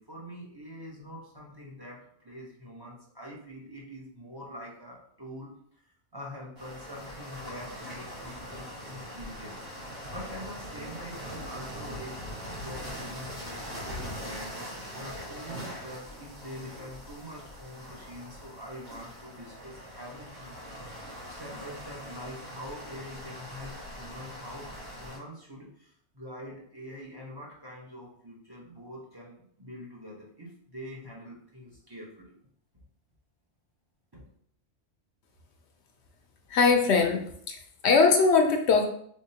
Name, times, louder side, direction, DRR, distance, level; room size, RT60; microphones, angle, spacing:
voice 1, 0.0-5.5 6.1-14.5 14.9-20.6 20.9-24.7 25.0-32.3 34.1-34.2, equal, 20° right, -4 dB, 0.9 m, -44 dB
sound 1, 6.6-25.2, equal, 85° right, 2.3 m, -42 dB
voice 2, 36.5-38.9, left 4 dB, 70° left, 4 dB, 0.8 m, -22 dB
3.9 x 3.6 x 2.8 m, 0.64 s
omnidirectional pair, 1.2 m